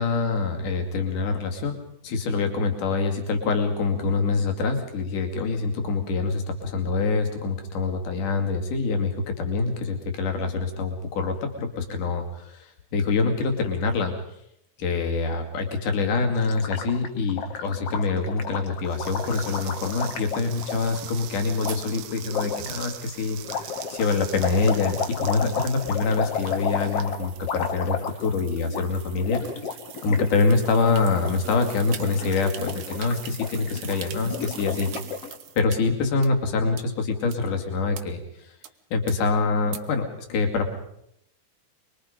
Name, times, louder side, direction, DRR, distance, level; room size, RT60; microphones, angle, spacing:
voice 1, 0.0-1.8 2.0-14.1 14.8-29.4 30.0-34.9 35.6-38.5 38.9-40.7, left 4 dB, 75° left, 4 dB, 4.0 m, -25 dB
Gurgling, 16.4-21.0 21.6-21.8 22.3-22.7 23.4-28.4 28.6-28.8 29.1-30.3 30.5-30.8 31.1-31.6 31.9-35.3, left 6 dB, 55° left, 2.6 m, -32 dB
sound 1, 18.9-27.9, right 12 dB, 90° right, 2.6 m, -42 dB
sound 2, 21.7-35.8 36.2-36.3 36.8-36.9 37.3-37.4 37.9-38.0 38.6-38.7 39.1-39.2 39.7-39.8, right 10 dB, 75° right, 2.7 m, -44 dB
25.5 x 23.5 x 5.2 m, 0.77 s
omnidirectional pair, 3.6 m